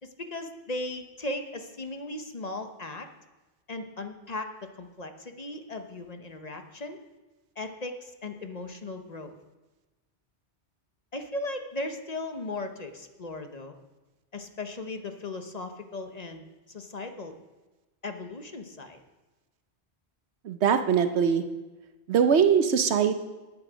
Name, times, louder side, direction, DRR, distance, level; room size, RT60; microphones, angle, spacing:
voice 1, 0.0-3.1 3.7-7.0 7.6-9.3 11.1-13.8 14.3-17.4 18.0-19.0, left 2 dB, 40° left, 6 dB, 0.9 m, -37 dB
voice 2, 20.4-21.4 22.1-23.2, right 7 dB, 85° right, 9 dB, 1.1 m, -22 dB
11.0 x 9.0 x 5.0 m, 1.2 s
omnidirectional pair, 1.1 m